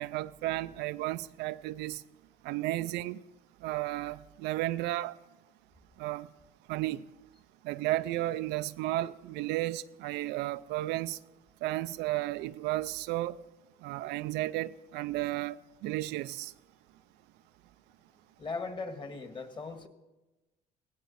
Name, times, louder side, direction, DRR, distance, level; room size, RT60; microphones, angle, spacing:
voice 1, 0.0-2.0 2.4-3.2 3.6-5.2 6.0-6.3 6.7-7.0 7.6-11.2 11.6-13.4 13.8-15.6 15.8-16.5, right 16 dB, 90° right, 0.5 m, -33 dB
voice 2, 18.4-19.9, left 4 dB, 30° left, 1.8 m, -38 dB
17.0 x 16.0 x 4.1 m
cardioid pair, 110°, 17 cm